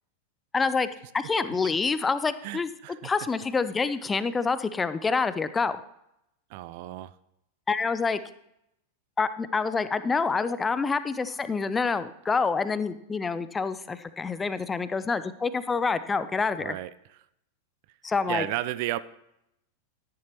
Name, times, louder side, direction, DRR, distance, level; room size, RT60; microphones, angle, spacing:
voice 1, 0.5-0.9 1.1-2.7 3.0-5.8 7.7-8.2 9.2-16.8 18.0-18.5, left 4 dB, 15° left, 14 dB, 0.5 m, -27 dB
voice 2, 2.4-3.1 6.5-7.1 16.6-16.9 18.3-19.0, right 15 dB, 50° right, 17 dB, 0.4 m, -33 dB
12.5 x 10.5 x 3.0 m, 0.81 s
figure-of-eight pair, 90°, 0 cm